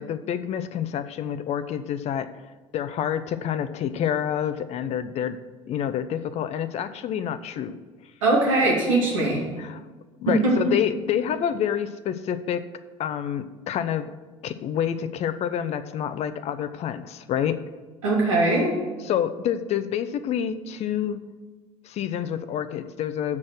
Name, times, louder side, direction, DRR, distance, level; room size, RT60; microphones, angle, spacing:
voice 1, 0.0-2.3 2.7-5.4 5.7-7.7 9.6-9.8 10.2-12.7 13.0-14.1 14.4-17.6 19.0-21.2 21.8-23.4, left 9 dB, 40° left, 13 dB, 0.6 m, -28 dB
voice 2, 8.2-9.4 10.3-10.7 18.0-18.7, right 2 dB, 70° right, -3 dB, 2.5 m, -21 dB
8.5 x 6.3 x 6.2 m, 1.3 s
figure-of-eight pair, 65°, 17 cm